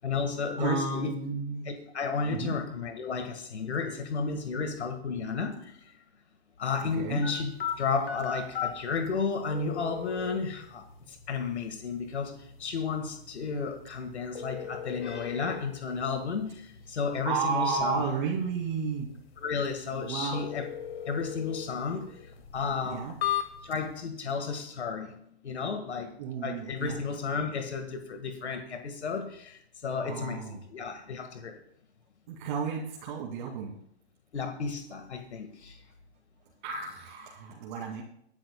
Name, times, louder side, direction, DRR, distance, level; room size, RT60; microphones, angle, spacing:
voice 1, 0.0-1.2 1.6-5.8 6.6-7.5 7.8-18.0 19.4-20.7 21.1-23.1 23.6-25.1 25.4-26.2 26.4-31.6 34.3-35.8, left 5 dB, 85° left, 6 dB, 1.7 m, -33 dB
voice 2, 0.6-1.7 2.3-2.6 6.9-7.2 17.2-19.1 19.9-20.4 22.8-23.2 26.2-27.0 30.0-30.6 32.3-33.8 36.6-38.0, right 5 dB, 45° right, -2 dB, 2.5 m, -32 dB
sound 1, 7.2-23.9, left 9 dB, 65° left, 2.3 m, -39 dB
24.0 x 12.0 x 2.2 m, 0.70 s
hypercardioid pair, 135°, 33 cm